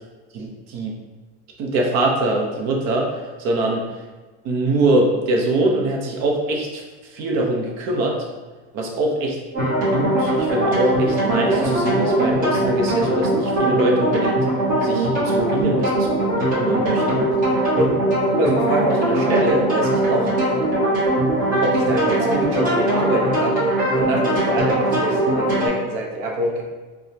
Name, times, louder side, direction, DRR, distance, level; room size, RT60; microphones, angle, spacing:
voice 1, 0.3-0.9 1.6-3.8 4.4-8.2 8.7-9.4 9.8-14.4 14.8-17.3 17.7-17.9 18.3-20.3 21.6-26.6, right 2 dB, 55° right, -1 dB, 0.8 m, -23 dB
sound 1, 9.5-25.7, right 1 dB, 25° right, 1.3 m, -20 dB
4.7 x 2.3 x 2.7 m, 1.3 s
cardioid pair, 155°, 32 cm